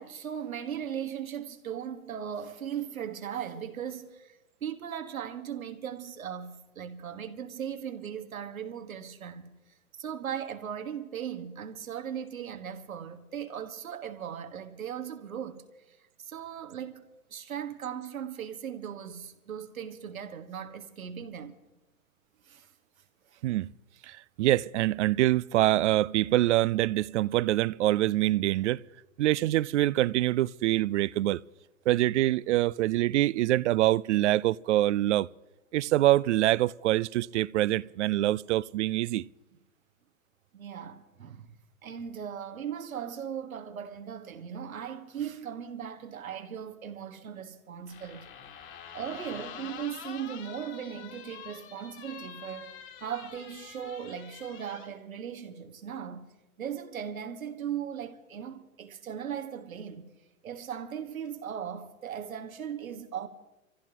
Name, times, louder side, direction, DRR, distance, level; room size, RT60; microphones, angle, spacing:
voice 1, 0.0-9.5 10.0-17.0 17.3-21.6 22.4-22.7 23.3-23.4 40.5-41.5 41.8-48.3 48.9-56.3 56.6-60.1 60.4-63.3, right 8 dB, 80° right, 1.6 m, -38 dB
voice 2, 24.0-28.8 29.2-31.4 31.9-35.3 35.7-39.2, right 15 dB, 60° right, 0.5 m, -25 dB
sound 1, 47.9-54.9, left 8 dB, 30° left, 1.6 m, -46 dB
26.0 x 15.0 x 2.9 m
hypercardioid pair, 105°, 41 cm